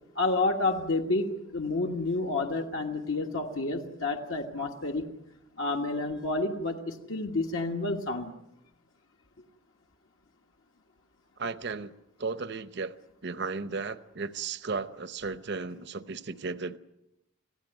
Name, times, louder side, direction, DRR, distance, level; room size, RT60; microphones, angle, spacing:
voice 1, 0.1-5.1 5.6-8.3, left 2 dB, 70° left, 2 dB, 1.5 m, -29 dB
voice 2, 11.4-11.9 12.2-12.9 13.2-16.8, right 4 dB, 50° right, 14 dB, 0.8 m, -35 dB
26.0 x 16.5 x 9.1 m, 0.87 s
head